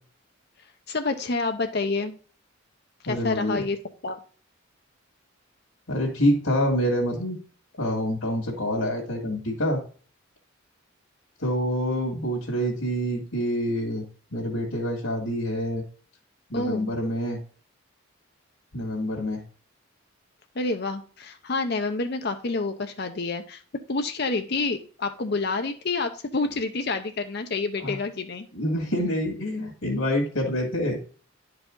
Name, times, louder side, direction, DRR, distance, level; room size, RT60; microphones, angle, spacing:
voice 1, 0.9-2.2 3.0-3.8 4.0-4.2 16.5-16.9 20.6-23.6 23.9-28.5, left 3 dB, 50° left, 7 dB, 0.7 m, -28 dB
voice 2, 3.1-3.6 5.9-7.4 7.8-9.8 11.4-14.0 14.3-15.8 16.5-17.4 18.7-19.4 27.8-28.0 28.5-31.0, equal, 75° left, -1 dB, 2.1 m, -26 dB
11.0 x 4.8 x 3.8 m, 0.41 s
head